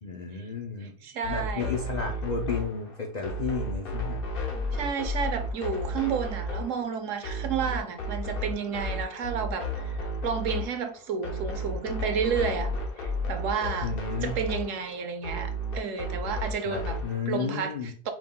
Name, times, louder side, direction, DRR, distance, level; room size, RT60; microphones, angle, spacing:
voice 1, 0.0-0.9 1.3-4.2 13.8-14.4 16.7-17.9, left 5 dB, 70° left, 0.4 m, -33 dB
voice 2, 0.8-1.8 4.7-12.7 13.0-14.0 14.2-17.0 17.3-18.1, right 6 dB, 70° right, 1.0 m, -31 dB
sound 1, 1.2-17.2, equal, 50° left, 0.8 m, -33 dB
4.9 x 3.6 x 2.2 m
omnidirectional pair, 1.5 m